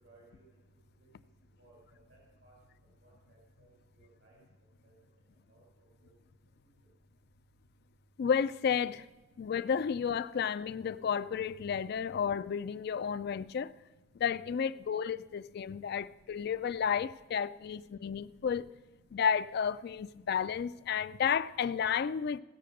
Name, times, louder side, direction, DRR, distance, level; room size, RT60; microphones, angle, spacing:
voice 1, 0.0-0.4 1.6-1.7 2.1-2.5 3.0-4.4 4.8-4.9 5.5-5.6 6.0-6.1, right 2 dB, 85° right, 4.3 m, -61 dB
voice 2, 8.2-9.0 9.4-13.7 14.2-18.7 19.1-22.4, left 7 dB, 55° left, 0.3 m, -32 dB
16.5 x 6.7 x 6.4 m
head